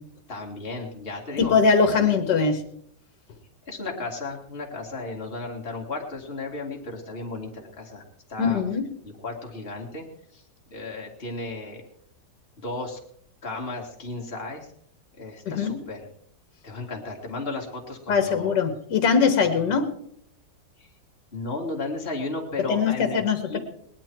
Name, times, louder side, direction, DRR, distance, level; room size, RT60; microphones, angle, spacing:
voice 1, 0.3-1.6 3.7-8.6 9.0-10.0 10.3-10.4 10.7-11.8 12.6-13.0 13.4-14.7 15.1-16.1 16.6-18.6 20.8-20.9 21.3-23.2 23.5-23.6, left 2 dB, 35° left, 0 dB, 2.3 m, -34 dB
voice 2, 1.4-2.6 8.4-8.9 15.6-15.7 18.1-19.9 22.7-23.6, left 5 dB, 70° left, 8 dB, 1.9 m, -21 dB
19.5 x 11.0 x 4.5 m, 0.69 s
omnidirectional pair, 1.9 m